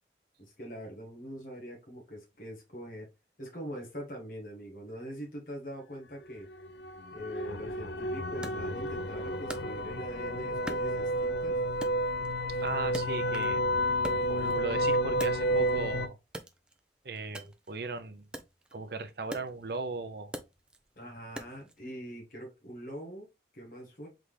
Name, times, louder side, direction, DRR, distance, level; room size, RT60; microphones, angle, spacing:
voice 1, 0.4-3.1 3.4-6.5 7.1-11.6 21.0-23.3 23.5-24.1, equal, 50° left, 1.4 m, -43 dB
sound 1, 6.3-16.1, equal, 75° left, 0.5 m, -31 dB
Wood, 8.4-10.2 10.7-11.4 11.8-13.6 13.9-15.8 16.3-21.8, right 1 dB, 5° right, 0.4 m, -45 dB
voice 2, 12.6-13.6 14.1-16.2 17.0-18.2 18.7-20.3, right 3 dB, 60° right, 0.6 m, -37 dB
3.8 x 3.4 x 3.2 m
head